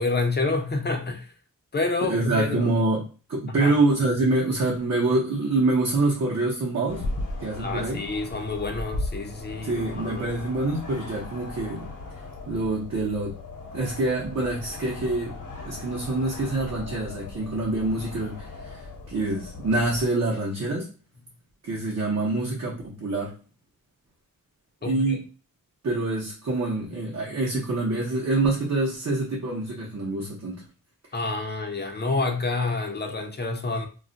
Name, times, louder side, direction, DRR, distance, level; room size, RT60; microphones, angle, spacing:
voice 1, 0.0-1.3 1.7-2.7 3.5-3.7 7.6-10.3 24.8-25.2 31.1-33.9, left 3 dB, 30° left, 0.5 m, -28 dB
voice 2, 2.0-7.1 7.4-8.0 9.6-11.9 12.5-13.3 13.7-15.4 15.6-20.9 21.6-23.3 24.8-25.2 25.8-30.6, right 2 dB, 50° right, 0.8 m, -26 dB
sound 1, 6.9-20.1, left 2 dB, 65° left, 1.0 m, -37 dB
2.4 x 2.1 x 3.8 m
wide cardioid pair, 115°, 35 cm